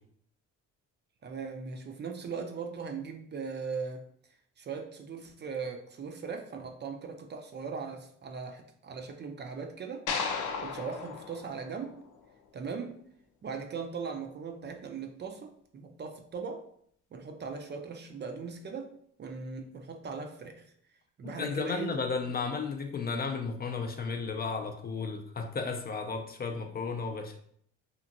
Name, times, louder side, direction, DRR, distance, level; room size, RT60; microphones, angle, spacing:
voice 1, 1.2-4.1 4.6-12.0 12.5-13.0 13.4-16.7 17.1-20.7 21.2-22.0, right 5 dB, 35° right, 4 dB, 0.4 m, -39 dB
sound 1, 10.1-12.4, left 5 dB, 85° left, 0.5 m, -36 dB
voice 2, 21.2-27.4, left 4 dB, 30° left, 4 dB, 0.4 m, -34 dB
2.9 x 2.5 x 2.5 m, 0.64 s
cardioid pair, 90°, 30 cm